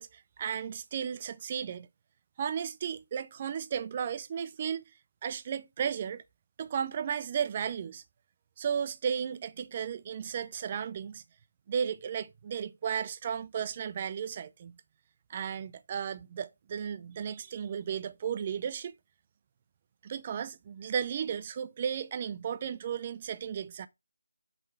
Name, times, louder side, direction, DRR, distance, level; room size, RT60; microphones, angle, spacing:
voice 1, 0.0-1.9 2.4-4.9 5.2-6.2 6.6-8.0 8.6-11.2 11.7-14.7 15.3-19.0 20.0-23.9, right 7 dB, 30° right, 0.5 m, -34 dB
6.5 x 4.3 x 5.8 m
figure-of-eight pair, 160°, 0 cm